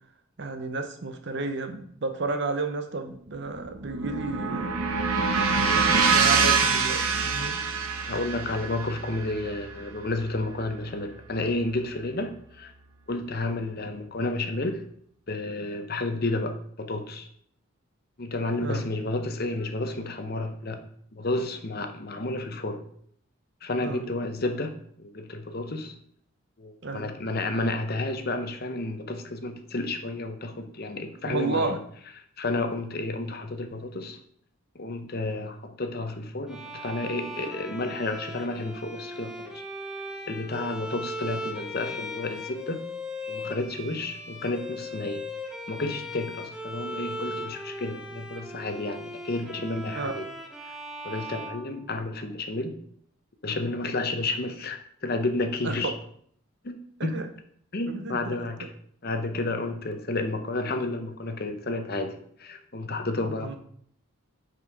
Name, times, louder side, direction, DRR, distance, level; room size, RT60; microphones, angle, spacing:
voice 1, 0.4-4.7 5.5-7.6 18.6-18.9 23.8-24.1 26.8-27.1 31.2-31.8 50.0-50.2 55.6-55.9 57.0-57.3 57.8-58.5 63.2-63.6, right 3 dB, 50° right, 7 dB, 0.8 m, -32 dB
sound 1, 3.3-11.6, right 5 dB, 75° right, 1.1 m, -26 dB
voice 2, 8.1-12.7 13.1-14.8 15.3-17.3 18.2-20.8 21.1-22.8 23.6-25.9 26.6-31.8 32.4-34.2 34.7-39.6 40.3-42.8 43.3-45.2 45.7-50.2 50.6-50.7 51.0-52.7 53.4-55.9 56.6-57.2 57.7-58.7 59.0-63.6, left 2 dB, 45° left, 7 dB, 0.8 m, -31 dB
Bowed string instrument, 36.5-52.3, left 1 dB, 5° right, 0.7 m, -38 dB
5.9 x 5.3 x 4.8 m, 0.63 s
head